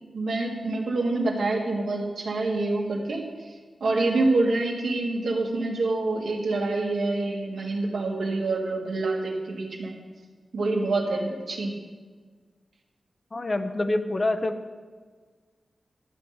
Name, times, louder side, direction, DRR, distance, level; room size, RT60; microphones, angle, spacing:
voice 1, 0.1-3.2 3.8-10.0 10.5-11.7, right 2 dB, 85° right, 0 dB, 2.0 m, -26 dB
voice 2, 13.3-14.5, left 2 dB, 30° left, 8 dB, 0.7 m, -26 dB
12.0 x 5.9 x 8.8 m, 1.5 s
wide cardioid pair, 130°, 0 cm